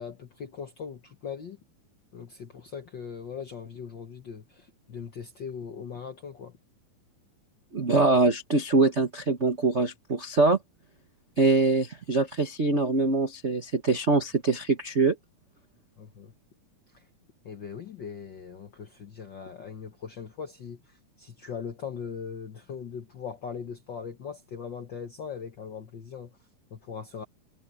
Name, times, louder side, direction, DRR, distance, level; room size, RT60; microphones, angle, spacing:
voice 1, 0.0-1.6 2.1-6.6 16.0-16.3 16.9-17.0 17.4-26.3 26.7-27.2, left 6 dB, 60° left, 1.1 m, -40 dB
voice 2, 7.7-10.6 11.4-15.1, right 3 dB, 70° right, 0.6 m, -23 dB
omnidirectional pair, 3.8 m